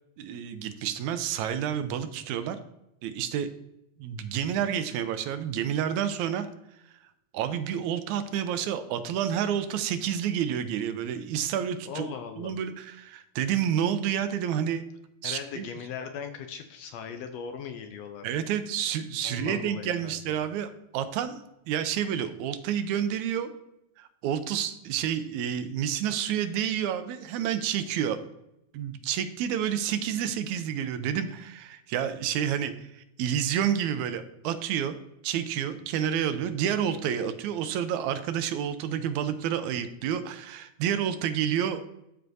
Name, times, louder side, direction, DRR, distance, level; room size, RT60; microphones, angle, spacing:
voice 1, 0.2-2.6 3.0-3.5 4.0-6.5 7.3-14.8 15.2-15.7 18.2-21.4 21.7-23.5 24.0-28.2 28.7-35.0 35.2-41.9, right 9 dB, 85° right, 10 dB, 2.0 m, -29 dB
voice 2, 11.9-12.6 15.2-18.3 19.2-20.4, left 6 dB, 75° left, 7 dB, 1.6 m, -39 dB
12.5 x 4.6 x 2.6 m, 0.84 s
omnidirectional pair, 3.3 m